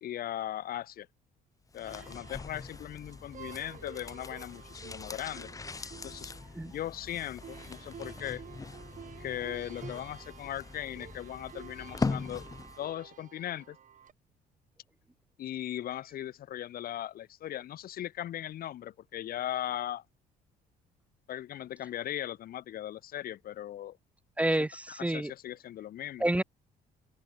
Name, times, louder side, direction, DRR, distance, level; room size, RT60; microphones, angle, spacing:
voice 1, 0.0-1.1 1.7-5.5 6.0-6.3 6.6-8.4 9.2-12.5 12.8-13.8 15.4-20.0 21.3-24.0 25.0-26.3, left 12 dB, 60° left, 2.1 m, -38 dB
sound 1, 1.7-12.9 13.2-13.3, left 4 dB, 20° left, 1.1 m, -41 dB
sound 2, 1.8-14.1, right 9 dB, 50° right, 6.6 m, -51 dB
voice 2, 24.4-25.3 26.2-26.4, right 1 dB, 10° right, 1.7 m, -29 dB
open air
cardioid pair, 110°, 17 cm